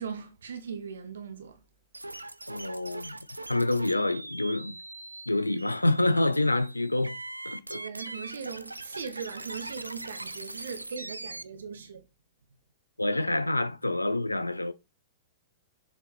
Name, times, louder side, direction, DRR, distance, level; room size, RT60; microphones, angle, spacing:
voice 1, 0.0-1.6 7.7-12.0, right 6 dB, 65° right, 0.9 m, -39 dB
sound 1, 1.9-11.4, right 2 dB, 85° right, 0.5 m, -41 dB
voice 2, 2.5-3.2 3.5-4.8 5.3-7.2 7.4-7.8 13.0-14.7, left 2 dB, 85° left, 0.4 m, -27 dB
7.3 x 5.1 x 3.1 m
figure-of-eight pair, 105°, 0 cm